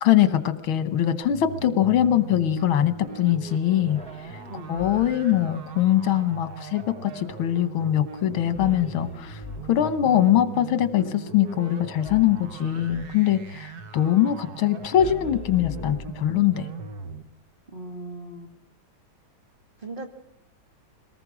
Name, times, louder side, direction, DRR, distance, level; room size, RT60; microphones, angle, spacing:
voice 1, 0.0-4.0 4.7-9.4 9.7-16.7, left 11 dB, 85° left, 13 dB, 1.9 m, -22 dB
sound 1, 1.2-17.2, right 5 dB, 55° right, 1.7 m, -39 dB
sound 2, 3.8-5.4 8.5-10.1 12.0-13.2 14.9-16.6, left 5 dB, 5° left, 0.9 m, -42 dB
voice 2, 17.7-18.5 19.8-20.1, right 2 dB, 25° right, 3 dB, 2.5 m, -38 dB
22.5 x 19.0 x 6.2 m, 0.70 s
omnidirectional pair, 2.2 m